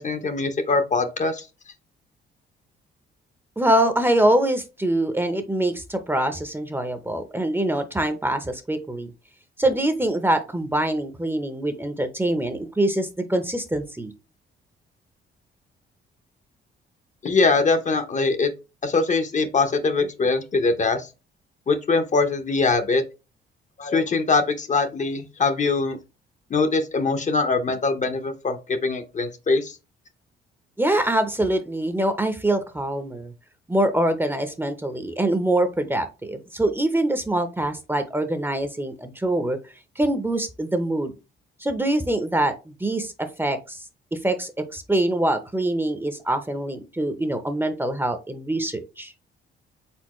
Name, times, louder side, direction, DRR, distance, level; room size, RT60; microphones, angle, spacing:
voice 1, 0.0-1.5 17.2-18.5 18.8-21.1 21.7-23.0 23.8-26.0 26.5-29.8, left 3 dB, 40° left, 0.7 m, -22 dB
voice 2, 3.6-9.1 9.6-14.1 30.8-33.3 33.7-39.6 40.0-41.1 41.6-43.1 43.4-43.8 44.1-49.1, right 1 dB, 10° right, 0.7 m, -24 dB
4.4 x 3.9 x 3.0 m
cardioid pair, 90°, 20 cm